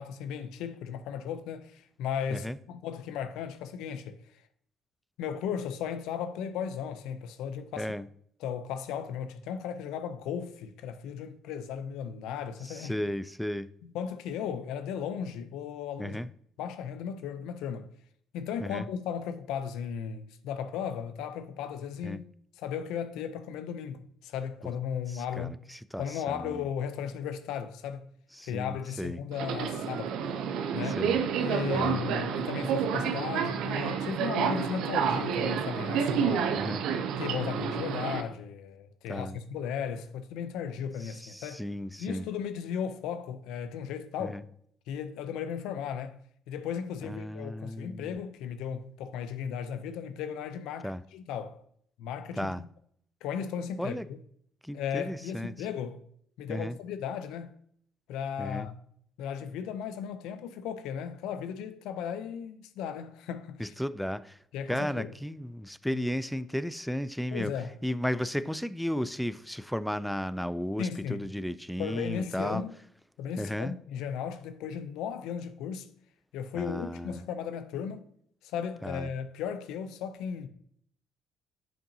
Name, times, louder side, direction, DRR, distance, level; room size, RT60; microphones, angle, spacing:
voice 1, 0.0-4.2 5.2-7.9 8.4-12.9 13.8-16.2 16.6-17.9 18.3-22.2 22.6-25.5 25.9-28.1 28.5-30.2 30.7-31.0 31.4-36.5 37.2-41.6 42.0-44.4 44.9-46.2 46.5-51.6 52.0-52.7 53.2-54.2 54.7-56.0 56.4-57.5 58.1-58.8 59.2-63.7 64.5-65.1 67.3-67.8 70.8-71.3 71.8-72.7 73.2-75.9 76.3-78.1 78.4-80.5, left 8 dB, 80° left, 0.5 m, -36 dB
voice 2, 7.8-8.1 12.6-13.7 16.0-16.3 18.6-18.9 22.0-22.2 24.6-24.7 25.1-26.6 28.4-29.2 31.0-31.2 31.7-32.0 36.6-36.8 39.1-39.4 41.0-42.2 44.2-44.4 47.0-48.2 50.8-51.0 52.4-52.6 53.8-54.1 54.6-55.5 56.5-56.8 58.4-58.7 63.6-64.4 64.7-67.5 67.8-72.6 73.4-73.7 76.5-77.2 78.8-79.1, equal, ahead, 0.3 m, -34 dB
Subway metro underground, 29.3-38.2, right 7 dB, 75° right, 0.6 m, -29 dB
7.4 x 5.2 x 2.7 m
supercardioid pair, 70°, 0 cm